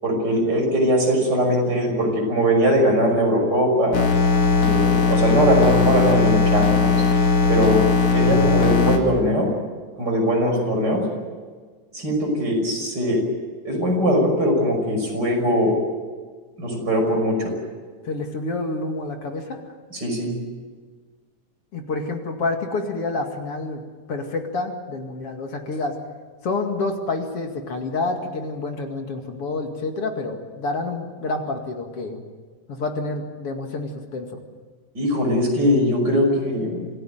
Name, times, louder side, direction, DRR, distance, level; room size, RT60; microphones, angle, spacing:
voice 1, 0.0-4.0 4.6-7.1 7.5-7.9 8.1-9.5 10.0-11.0 11.9-13.2 13.6-15.8 16.6-17.5 19.9-20.3 34.9-36.9, equal, 30° right, 1 dB, 6.4 m, -21 dB
sound 1, 3.9-9.0, left 4 dB, 85° left, 3.8 m, -18 dB
voice 2, 18.0-19.6 21.7-23.8 24.1-26.0 26.4-32.2 32.7-34.4, left 3 dB, 50° left, 4 dB, 2.9 m, -28 dB
27.0 x 16.0 x 9.3 m, 1.5 s
omnidirectional pair, 3.5 m